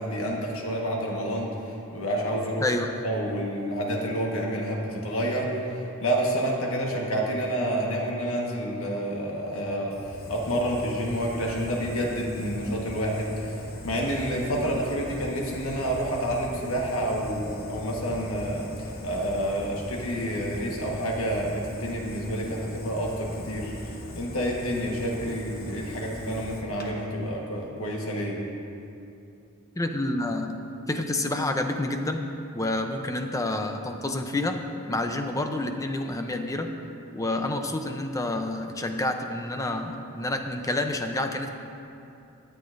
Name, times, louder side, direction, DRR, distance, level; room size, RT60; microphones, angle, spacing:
voice 1, 0.0-2.6 3.0-10.0 10.3-28.4, equal, 70° left, -1 dB, 1.4 m, -29 dB
voice 2, 2.6-3.0 29.8-30.6 30.9-32.2 32.5-34.6 34.9-36.7 37.1-41.5, left 2 dB, 15° left, 5 dB, 0.6 m, -28 dB
Fire, 9.9-26.9, left 1 dB, 45° left, 1.0 m, -41 dB
18.0 x 9.1 x 2.6 m, 2.7 s
head